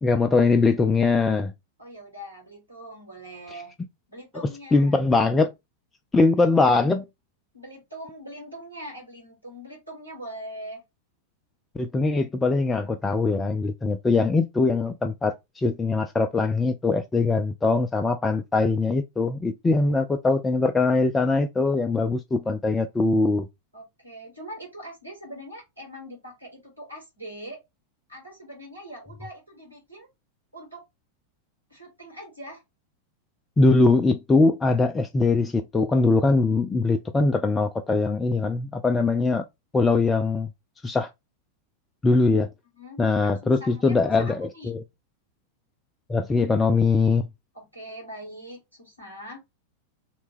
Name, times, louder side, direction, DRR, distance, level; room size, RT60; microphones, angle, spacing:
voice 1, 0.0-1.5 4.7-5.5 6.1-7.0 11.8-23.5 33.6-39.4 39.7-40.5 40.8-41.1 42.0-42.5 43.0-44.8 46.1-47.3, left 3 dB, 15° left, 0.3 m, -22 dB
voice 2, 1.8-3.7 4.1-5.0 7.5-10.8 19.8-20.1 23.7-27.6 28.1-30.1 30.5-30.8 31.7-32.6 42.7-44.8 47.5-49.5, equal, 90° right, 1.7 m, -42 dB
2.8 x 2.2 x 3.1 m
figure-of-eight pair, 90°, 0 cm